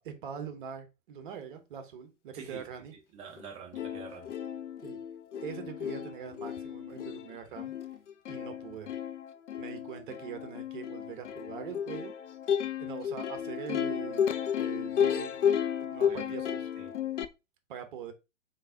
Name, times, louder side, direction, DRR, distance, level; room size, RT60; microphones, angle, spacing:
voice 1, 0.0-2.9 4.8-5.0 5.4-7.7 8.3-8.9 9.6-12.1 12.8-15.4 15.8-16.7 17.7-18.1, right 7 dB, 40° right, 0.9 m, -42 dB
voice 2, 2.3-2.6 2.9-4.3 15.9-16.5 16.8-16.9, right 6 dB, 15° right, 0.6 m, -47 dB
Plucked string instrument, 3.4-3.5 3.7-17.3, left 8 dB, 70° left, 0.5 m, -33 dB
3.8 x 3.5 x 2.6 m
figure-of-eight pair, 110°, 38 cm